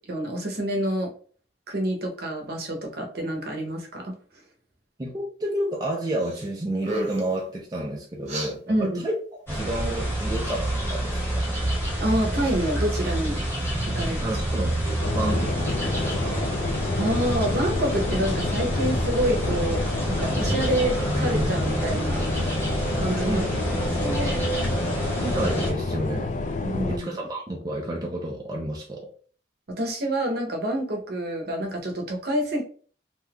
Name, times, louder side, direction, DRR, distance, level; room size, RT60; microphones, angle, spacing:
voice 1, 0.1-1.1 1.7-4.4 8.7-9.0 12.0-13.4 14.0-14.2 16.9-19.8 20.1-22.2 23.0-23.4 24.0-24.4 26.6-27.1 29.8-32.6, right 1 dB, 60° right, 2 dB, 0.8 m, -27 dB
voice 2, 5.0-9.2 9.5-11.4 14.0-16.5 23.3-23.5 25.2-29.1, right 1 dB, 20° right, -1 dB, 0.4 m, -30 dB
sound 1, 6.2-6.5 6.8-7.4 8.3-8.5, right 1 dB, 35° right, 0.9 m, -32 dB
sound 2, 9.5-25.7, right 1 dB, 10° left, 1.2 m, -28 dB
sound 3, 15.0-27.0, left 2 dB, 40° left, 0.3 m, -29 dB
3.4 x 2.7 x 2.2 m, 0.43 s
head